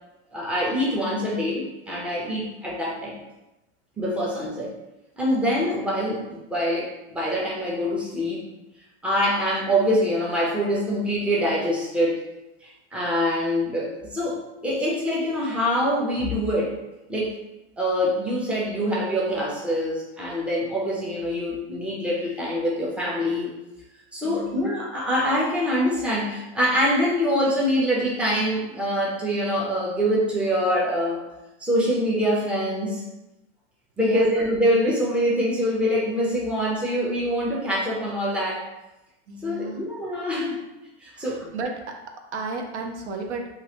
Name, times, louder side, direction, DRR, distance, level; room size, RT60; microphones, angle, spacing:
voice 1, 0.3-3.2 4.0-4.7 5.2-8.5 9.0-12.2 12.6-16.8 17.1-17.4 17.8-23.5 24.1-31.2 31.6-33.0 34.0-38.6 39.4-40.6 41.0-41.5, equal, 5° right, -5 dB, 0.6 m, -24 dB
voice 2, 24.2-24.7 34.0-34.3 39.3-39.9 41.1-42.0 42.3-43.5, right 3 dB, 85° right, 3 dB, 0.7 m, -33 dB
3.1 x 2.5 x 2.8 m, 0.99 s
supercardioid pair, 135°, 33 cm